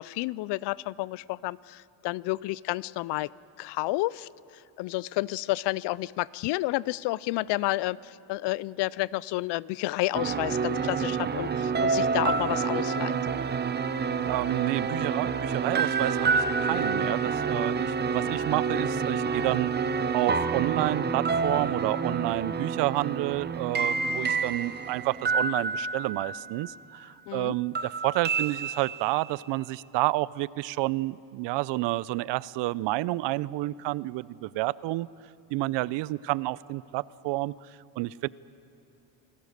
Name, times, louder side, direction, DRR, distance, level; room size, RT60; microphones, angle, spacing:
voice 1, 0.0-3.3 3.6-13.2 27.3-27.5, left 19 dB, 65° left, 22 dB, 0.5 m, -30 dB
sound 1, 10.1-26.8 27.7-29.4, right 5 dB, 20° right, 0.7 m, -28 dB
voice 2, 14.3-19.7 20.1-35.1 35.5-37.6 38.0-38.3, right 19 dB, 65° right, 21 dB, 0.6 m, -30 dB
28.0 x 17.0 x 6.6 m, 2.7 s
cardioid pair, 125°, 46 cm